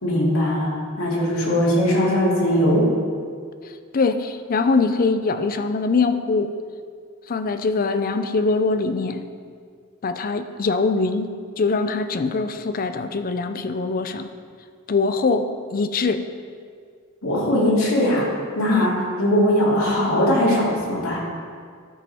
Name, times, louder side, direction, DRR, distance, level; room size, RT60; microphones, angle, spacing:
voice 1, 0.0-2.9 17.2-18.3 18.5-21.2, equal, 85° left, -5 dB, 2.6 m, -20 dB
voice 2, 3.9-6.5 7.3-9.2 10.0-11.3 11.6-14.3 14.9-16.2 18.7-18.9, left 4 dB, 45° left, 9 dB, 0.5 m, -22 dB
12.5 x 5.3 x 4.3 m, 2.1 s
head